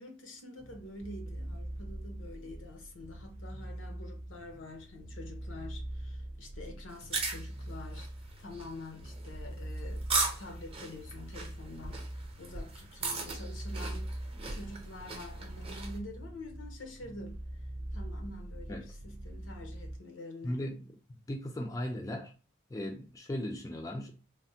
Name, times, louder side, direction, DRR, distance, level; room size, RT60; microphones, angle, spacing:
voice 1, 0.0-8.1 8.4-10.1 10.4-17.4 17.9-20.6, left 2 dB, 80° left, 0.8 m, -47 dB
sound 1, 0.6-20.0, right 1 dB, 85° right, 0.6 m, -43 dB
sound 2, 6.9-16.0, right 3 dB, 30° right, 0.6 m, -38 dB
voice 2, 20.4-20.8 21.3-22.3 22.7-24.1, left 1 dB, 15° left, 0.3 m, -37 dB
3.3 x 2.1 x 2.7 m
head